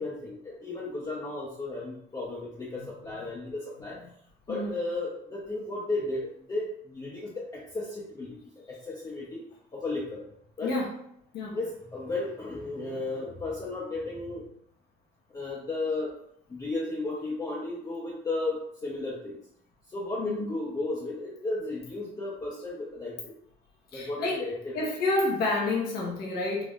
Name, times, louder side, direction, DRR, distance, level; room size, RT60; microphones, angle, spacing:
voice 1, 0.0-4.0 4.5-9.4 9.7-10.2 10.6-10.7 11.5-14.5 15.3-16.1 16.5-19.4 19.9-23.3 23.9-24.9, left 2 dB, 20° left, -5 dB, 0.7 m, -34 dB
voice 2, 20.2-20.5 23.9-24.4 24.7-26.6, left 2 dB, 70° left, -4 dB, 1.1 m, -29 dB
3.6 x 3.1 x 2.4 m, 0.70 s
cardioid pair, 110°, 17 cm